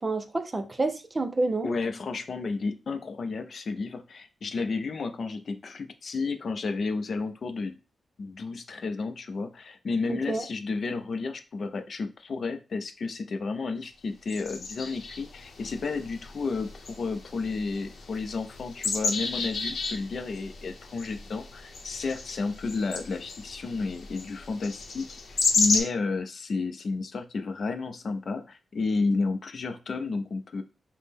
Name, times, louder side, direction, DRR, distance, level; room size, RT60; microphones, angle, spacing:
voice 1, 0.0-1.7 10.1-10.4, right 2 dB, 25° right, 0.4 m, -28 dB
voice 2, 1.6-7.8 8.2-30.6, left 4 dB, 50° left, 0.4 m, -32 dB
sound 1, 14.3-25.8, left 4 dB, 70° left, 0.8 m, -33 dB
5.9 x 2.1 x 3.4 m
wide cardioid pair, 175°, 0 cm